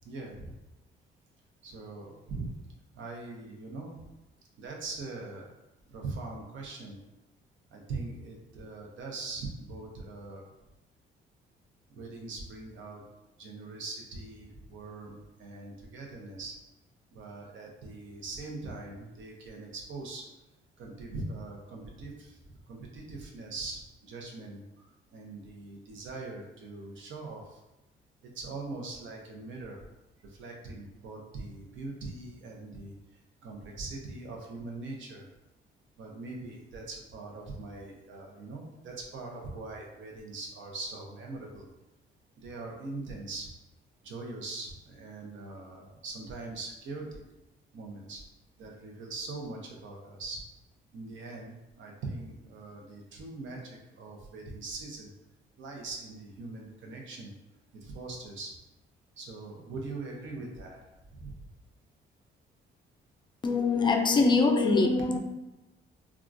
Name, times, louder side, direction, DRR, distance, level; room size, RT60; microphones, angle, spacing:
voice 1, 0.0-0.5 1.6-2.5 3.0-4.0 4.6-5.5 5.9-7.0 7.7-10.4 11.9-13.0 13.4-16.6 17.1-20.3 20.8-24.6 25.1-27.6 28.2-29.8 30.2-32.9 33.4-35.3 36.0-41.6 42.4-43.5 44.0-47.2 47.7-48.2 48.6-50.4 50.9-55.1 55.6-57.3 57.7-58.5 59.2-60.8 61.1-61.3, right 3 dB, 70° right, 0 dB, 0.7 m, -41 dB
voice 2, 63.4-65.2, left 3 dB, 25° left, 4 dB, 0.4 m, -23 dB
3.6 x 2.4 x 2.5 m, 0.98 s
cardioid pair, 90°, 20 cm